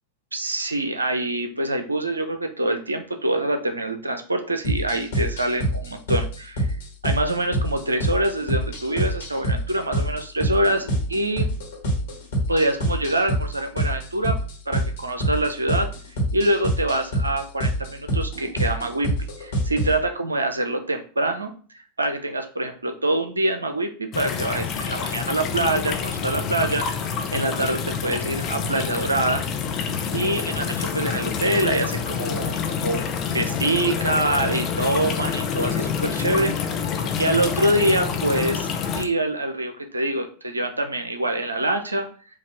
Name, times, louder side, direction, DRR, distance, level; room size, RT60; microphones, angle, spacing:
voice 1, 0.3-6.7 7.0-11.5 12.5-14.4 14.7-15.9 16.3-19.1 19.4-21.5 22.0-26.9 27.3-29.5 30.1-33.0 33.3-36.5 37.2-38.7 39.0-42.1, right 1 dB, 80° right, 6 dB, 0.5 m, -25 dB
sound 1, 4.6-20.0, right 1 dB, 60° left, 1.3 m, -26 dB
sound 2, 24.1-39.0, left 6 dB, 35° left, 0.6 m, -27 dB
4.7 x 2.3 x 3.4 m, 0.41 s
figure-of-eight pair, 90°, 0 cm